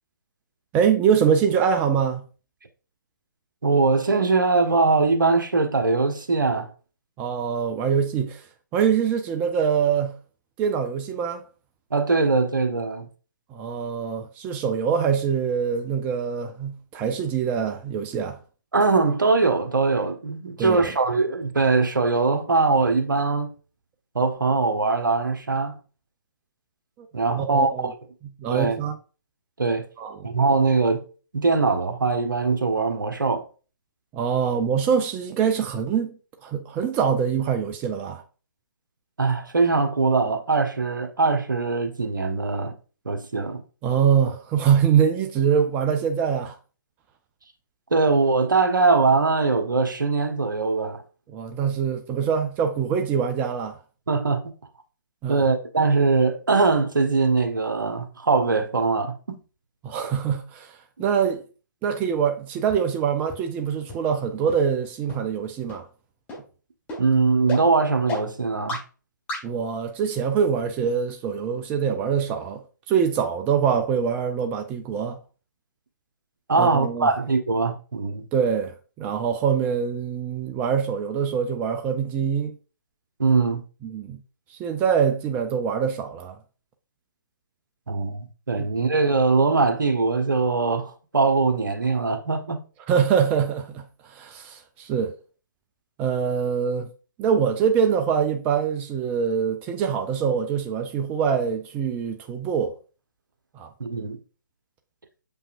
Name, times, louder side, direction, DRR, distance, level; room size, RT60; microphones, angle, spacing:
voice 1, 0.7-2.2 7.2-8.4 8.7-10.1 10.6-11.4 13.5-18.4 20.6-20.8 27.0-27.1 27.4-27.9 28.4-29.0 30.0-30.3 34.1-38.2 43.8-46.6 51.3-53.8 55.2-55.4 59.8-61.4 61.8-65.9 69.4-72.6 72.9-75.2 76.5-77.1 78.3-82.5 83.8-84.2 84.5-86.4 88.6-88.7 92.9-95.1 96.0-96.9 97.2-102.7 103.5-103.7, right 7 dB, 15° right, 0.5 m, -24 dB
voice 2, 3.6-6.7 11.9-13.1 18.7-23.5 24.1-25.8 27.1-27.9 28.5-28.8 29.6-29.9 30.2-31.0 31.3-33.4 39.2-42.8 43.0-43.6 47.9-51.0 54.1-54.4 55.3-59.4 67.0-68.8 76.5-78.3 83.2-83.6 87.9-92.6 103.8-104.2, right 4 dB, 70° right, 1.3 m, -22 dB
sound 1, 62.7-62.8 63.3-63.4 63.9-64.0 64.5-64.6 65.1-65.2 65.7-65.8 66.3-66.4 66.9-67.0 67.5-67.6 68.1-68.2 68.7-68.8 69.3-69.4, left 3 dB, 15° left, 1.6 m, -31 dB
7.0 x 5.4 x 2.5 m
figure-of-eight pair, 140°, 11 cm